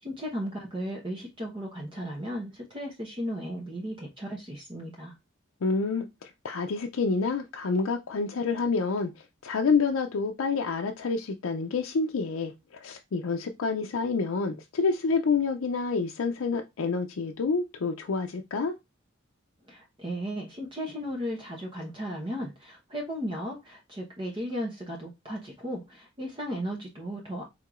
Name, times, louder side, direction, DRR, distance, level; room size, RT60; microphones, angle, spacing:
voice 1, 0.0-5.2 19.7-27.4, equal, 25° right, 0.9 m, -35 dB
voice 2, 5.6-18.7, left 4 dB, 90° left, 0.5 m, -28 dB
4.6 x 3.6 x 2.4 m
head